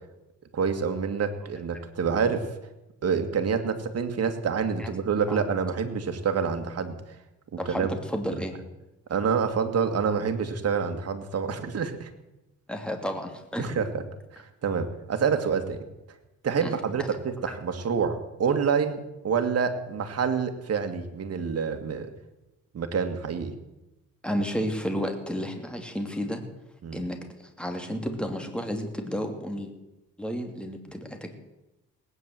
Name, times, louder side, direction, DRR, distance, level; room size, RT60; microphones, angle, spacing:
voice 1, 0.5-2.5 3.0-6.9 7.5-7.9 9.1-12.1 13.6-14.0 14.3-15.8 16.4-19.0 19.2-22.1 22.7-23.5 26.8-27.1, right 6 dB, 55° right, 7 dB, 2.3 m, -27 dB
voice 2, 7.6-8.5 12.7-13.7 16.6-16.7 17.5-17.6 24.2-26.4 26.9-29.7 30.2-31.3, equal, 5° left, 5 dB, 2.7 m, -32 dB
18.5 x 9.8 x 7.7 m, 0.97 s
cardioid pair, 90°, 30 cm